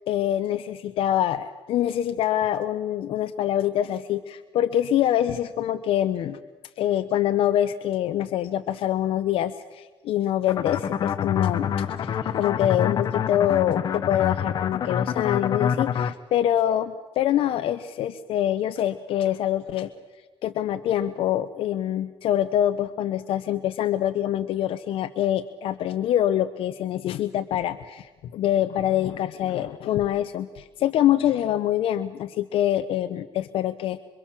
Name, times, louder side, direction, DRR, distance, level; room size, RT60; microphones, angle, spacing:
voice 1, 0.1-6.4 6.8-19.9 20.4-34.0, left 11 dB, 60° left, 11 dB, 0.8 m, -25 dB
sound 1, 10.5-16.1, left 8 dB, 40° left, 1.0 m, -26 dB
27.0 x 24.0 x 7.4 m, 1.3 s
cardioid pair, 165°, 11 cm